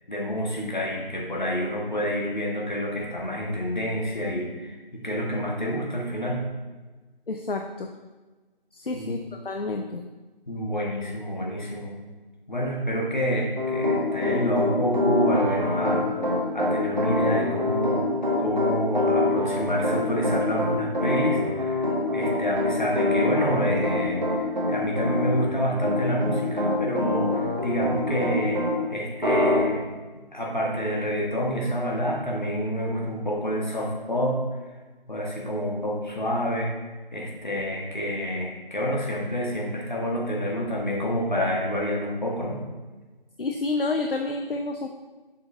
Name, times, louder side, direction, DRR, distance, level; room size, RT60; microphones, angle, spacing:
voice 1, 0.1-6.4 8.9-9.1 10.5-11.9 12.5-16.1 16.5-18.0 18.4-28.6 28.9-29.8 30.3-34.7 35.1-36.7 37.1-42.6, equal, 50° left, -2 dB, 1.6 m, -28 dB
voice 2, 7.3-7.9 8.7-10.0 43.4-44.9, left 3 dB, 65° left, 4 dB, 0.6 m, -29 dB
Piano, 13.6-28.7 29.2-29.6, left 2 dB, 50° right, 1.5 m, -25 dB
7.0 x 6.3 x 2.7 m, 1.3 s
figure-of-eight pair, 165°, 30 cm